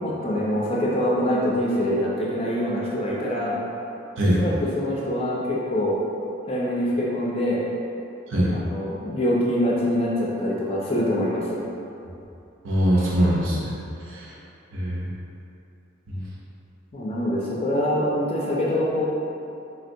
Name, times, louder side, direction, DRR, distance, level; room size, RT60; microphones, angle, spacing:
voice 1, 0.0-3.6 4.2-6.0 6.4-7.7 8.5-11.6 16.9-19.1, equal, 30° left, -5 dB, 0.4 m, -24 dB
voice 2, 12.6-14.3 14.7-15.1 16.1-16.2, equal, 70° right, -6 dB, 0.6 m, -23 dB
4.2 x 2.1 x 2.6 m, 2.7 s
head